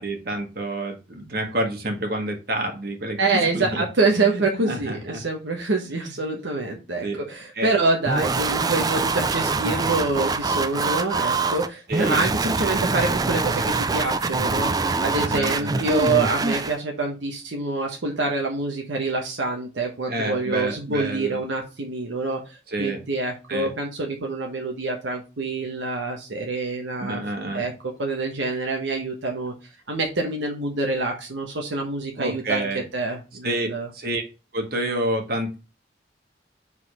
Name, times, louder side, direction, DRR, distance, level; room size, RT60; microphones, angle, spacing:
voice 1, 0.0-3.8 4.1-5.2 5.9-6.1 7.0-7.2 7.6-7.7 11.9-12.3 15.2-15.9 20.1-21.4 22.7-23.0 23.5-23.7 27.0-27.7 32.2-32.8 33.4-34.2 34.5-35.6, right 1 dB, 50° right, 3 dB, 1.7 m, -29 dB
voice 2, 3.2-27.2 27.5-27.7 28.0-29.5 29.9-32.7 32.9-33.9, right 3 dB, 80° right, 1 dB, 1.1 m, -26 dB
sound 1, 8.1-16.8, right 3 dB, 20° right, 0.3 m, -24 dB
5.0 x 4.1 x 5.4 m, 0.30 s
head